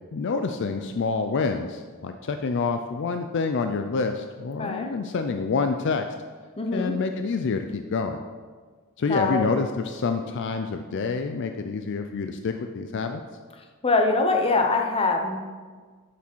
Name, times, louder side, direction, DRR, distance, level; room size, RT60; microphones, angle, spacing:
voice 1, 0.1-6.0 6.7-8.2 9.0-13.2, left 4 dB, 55° left, 6 dB, 0.4 m, -27 dB
voice 2, 4.6-4.9 6.6-6.9 9.1-9.5 13.8-15.4, left 3 dB, 25° left, 3 dB, 0.8 m, -23 dB
8.1 x 6.0 x 4.5 m, 1.5 s
head